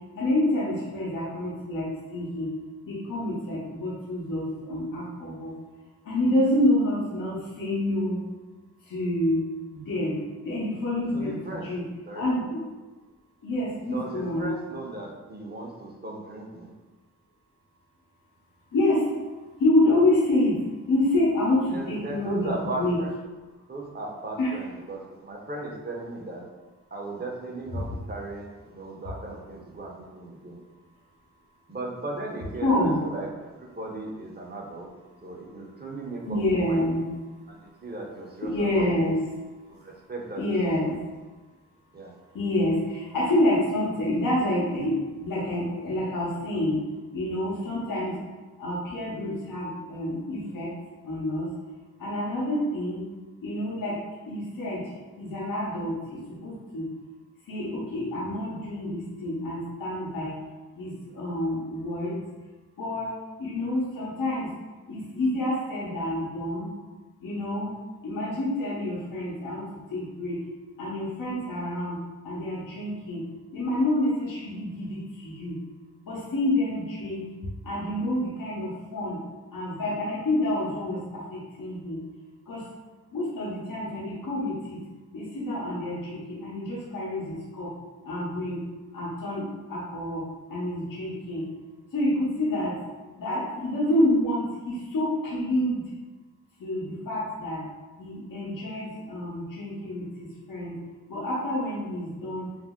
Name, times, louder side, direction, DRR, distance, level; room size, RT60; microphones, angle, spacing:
voice 1, 0.1-2.5 2.8-5.5 6.0-8.2 8.8-9.4 9.7-11.8 12.1-12.6 13.4-14.5 18.7-19.1 19.6-20.6 20.9-23.0 24.4-24.7 27.7-28.0 32.6-33.0 36.3-37.1 38.4-39.2 40.4-41.0 42.3-46.8 47.1-48.2 48.6-50.7 51.0-51.5 52.0-53.0 53.4-54.0 54.3-54.9 55.2-56.9 57.5-60.4 60.8-62.2 62.8-64.5 64.9-66.7 67.2-67.7 68.0-69.6 69.9-70.4 70.8-72.0 72.2-73.2 73.5-75.6 76.0-77.2 77.6-79.2 79.5-82.0 82.5-82.6 83.1-84.8 85.1-87.7 88.0-88.6 88.9-90.2 90.5-91.4 91.9-92.7 93.2-95.8 96.6-97.6 98.0-100.8 101.1-102.5, left 1 dB, 85° left, -7 dB, 0.8 m, -28 dB
voice 2, 11.0-11.7 12.1-12.3 13.8-16.7 21.7-23.1 23.7-26.4 26.9-30.6 31.7-34.9 35.2-36.9 37.5-39.1 39.7-40.4 40.8-40.9 41.9-42.1, right 2 dB, 30° right, -1 dB, 0.7 m, -37 dB
2.6 x 2.0 x 3.5 m, 1.2 s
cardioid pair, 45°, 32 cm